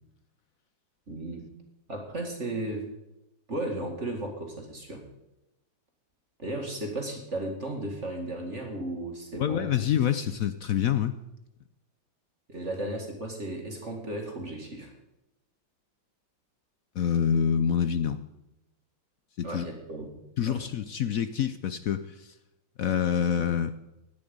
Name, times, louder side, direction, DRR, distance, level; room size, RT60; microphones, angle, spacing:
voice 1, 1.1-1.5 1.9-2.9 3.5-5.0 6.4-9.8 12.5-14.9 19.4-20.1 20.5-20.6, right 1 dB, 35° right, 2 dB, 2.3 m, -35 dB
voice 2, 9.4-11.1 17.0-18.2 19.4-19.7 20.4-22.3 22.8-23.7, left 8 dB, 65° left, 11 dB, 0.8 m, -26 dB
17.5 x 11.0 x 5.3 m, 0.91 s
omnidirectional pair, 2.1 m